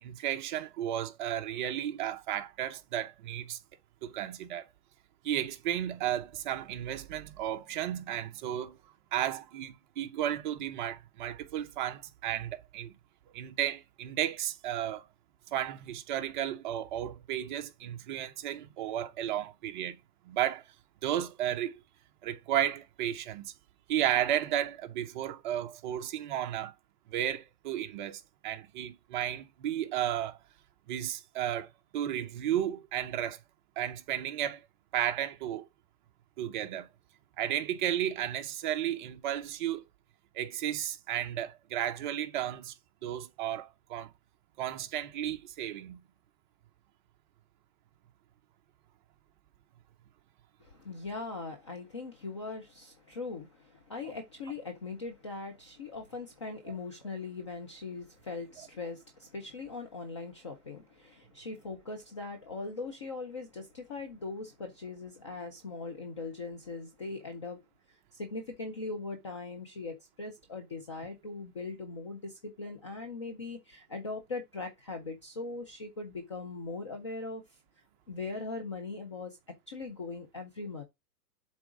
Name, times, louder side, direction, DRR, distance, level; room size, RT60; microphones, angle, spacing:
voice 1, 0.0-3.6 4.0-4.6 5.2-8.8 9.1-13.0 13.3-15.1 15.5-20.0 20.2-20.6 21.0-21.8 22.2-23.5 23.9-26.7 27.1-30.4 30.9-33.4 33.8-34.6 34.9-35.7 36.4-36.9 37.4-39.8 40.3-42.7 43.0-44.1 44.6-46.0, right 11 dB, 30° right, 0.7 m, -33 dB
voice 2, 50.6-67.6 67.9-77.4 78.1-79.4 79.7-80.8, left 3 dB, 20° left, 0.4 m, -40 dB
7.7 x 3.6 x 4.8 m
hypercardioid pair, 150°, 48 cm